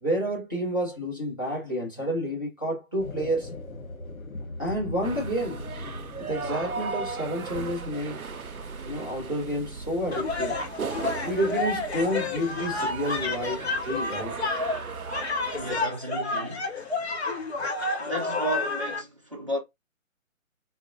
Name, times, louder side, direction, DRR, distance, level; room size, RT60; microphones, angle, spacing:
voice 1, 0.0-3.5 4.6-5.7 6.2-8.2 8.8-10.6 11.2-14.4, equal, 15° left, 0.7 m, -29 dB
sound 1, 3.0-9.2, left 2 dB, 80° left, 1.0 m, -40 dB
sound 2, 5.0-15.9, right 4 dB, 90° right, 0.6 m, -37 dB
sound 3, 10.1-19.0, left 3 dB, 50° left, 0.8 m, -30 dB
voice 2, 15.5-16.7 18.0-19.6, right 1 dB, 25° right, 0.6 m, -33 dB
3.9 x 2.1 x 2.6 m
figure-of-eight pair, 150°, 42 cm